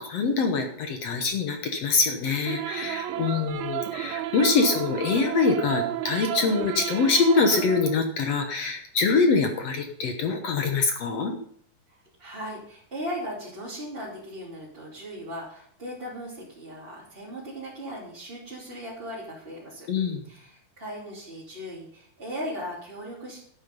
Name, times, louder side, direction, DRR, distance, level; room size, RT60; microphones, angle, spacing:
voice 1, 0.0-11.4 19.9-20.2, left 4 dB, 65° left, 5 dB, 1.6 m, -24 dB
sound 1, 2.5-7.9, right 13 dB, 85° right, 2.7 m, -32 dB
voice 2, 2.8-3.3 11.9-19.9 20.2-23.4, equal, 15° right, -8 dB, 2.9 m, -38 dB
11.5 x 9.1 x 5.4 m, 0.63 s
omnidirectional pair, 4.3 m